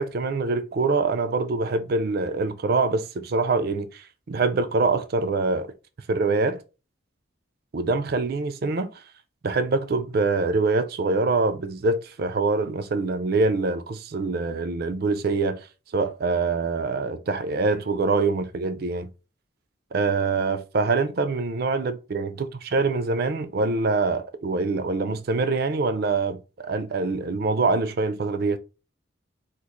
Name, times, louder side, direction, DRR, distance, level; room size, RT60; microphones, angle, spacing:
voice 1, 0.0-5.7 6.1-6.6 7.7-9.0 9.4-15.7 15.9-19.1 19.9-22.4 22.7-28.6, right 3 dB, 55° right, 0.4 m, -24 dB
3.0 x 2.4 x 3.7 m
head